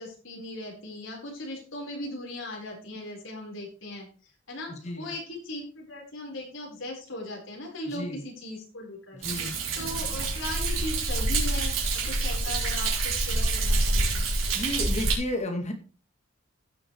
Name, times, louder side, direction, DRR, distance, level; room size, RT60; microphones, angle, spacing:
voice 1, 0.0-4.1 4.5-9.2 9.7-11.7 12.1-14.2, left 1 dB, 75° left, -1 dB, 4.2 m, -38 dB
voice 2, 4.7-5.1 7.9-8.2 9.2-9.5 14.5-15.7, left 1 dB, 35° left, 3 dB, 2.2 m, -32 dB
Thunder, 9.2-15.1, right 2 dB, 90° right, 3.9 m, -27 dB
16.5 x 6.7 x 3.1 m, 0.37 s
head